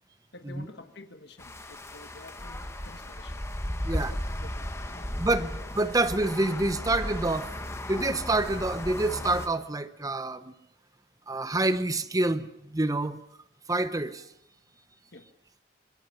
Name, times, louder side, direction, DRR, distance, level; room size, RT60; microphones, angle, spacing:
voice 1, 0.3-3.4 3.9-5.5 15.1-15.3, left 2 dB, 65° left, 1.6 m, -50 dB
sound 1, 1.4-9.5, left 1 dB, 15° left, 1.6 m, -35 dB
voice 2, 5.2-7.6 7.9-10.5 11.3-13.2 13.7-14.3, right 2 dB, 20° right, 0.9 m, -27 dB
25.0 x 21.5 x 6.9 m
head